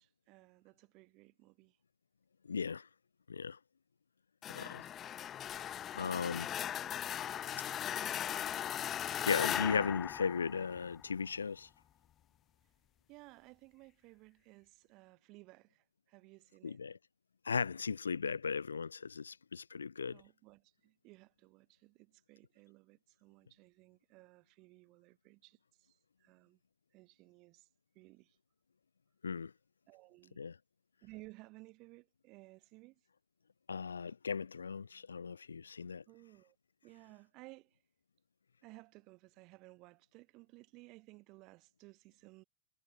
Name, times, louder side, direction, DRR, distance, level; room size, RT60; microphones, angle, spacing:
voice 1, 0.0-1.8 13.1-16.8 20.1-26.6 26.9-27.7 28.0-28.4 29.9-30.4 31.0-33.0 36.1-36.6 36.8-37.8 38.6-42.4, right 23 dB, 40° right, 3.6 m, -58 dB
voice 2, 2.4-2.9 3.3-3.6 4.5-4.9 5.9-6.5 7.6-7.7 9.2-11.7 16.6-17.0 17.4-20.2 29.2-29.5 30.4-30.6 33.7-36.0, left 5 dB, 75° left, 0.6 m, -37 dB
sound 1, 4.4-11.1, left 10 dB, 30° left, 1.5 m, -38 dB
figure-of-eight pair, 90°, 0 cm